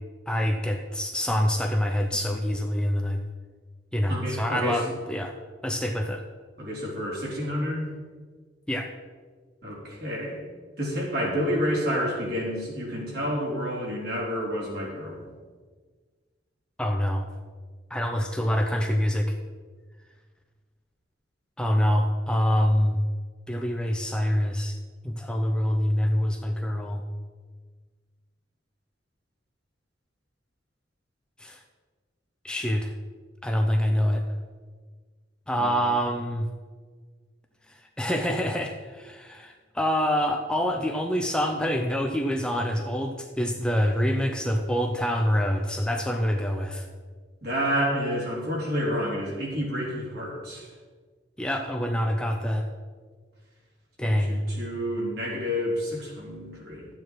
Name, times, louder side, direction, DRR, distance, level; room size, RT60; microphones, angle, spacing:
voice 1, 0.3-3.2 3.9-5.3 5.6-6.2 8.7-8.9 16.8-17.3 17.9-19.4 21.6-23.0 23.5-24.8 25.0-27.0 31.4-31.6 32.4-32.9 33.4-34.2 35.5-36.5 38.0-46.9 51.4-52.7 54.0-54.4, equal, 5° left, 3 dB, 0.6 m, -26 dB
voice 2, 4.1-4.8 6.6-7.9 9.6-10.4 10.8-15.3 35.6-35.8 47.4-50.7 54.0-56.9, equal, 60° right, -4 dB, 3.5 m, -29 dB
12.5 x 8.7 x 4.6 m, 1.5 s
head